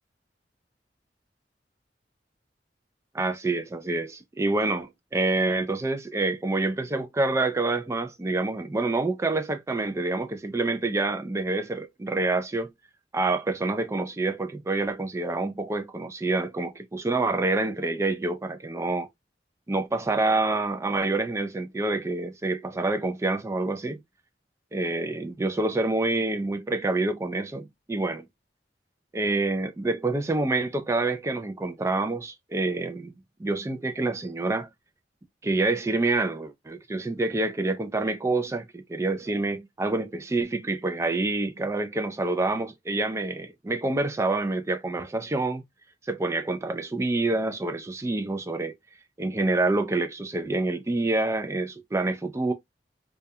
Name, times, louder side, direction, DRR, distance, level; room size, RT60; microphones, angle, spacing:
voice 1, 3.1-12.7 13.1-19.1 19.7-24.0 24.7-28.2 29.1-34.7 35.4-45.6 46.1-48.7 49.2-52.5, right 2 dB, 15° right, 0.3 m, -27 dB
2.3 x 2.2 x 2.6 m
head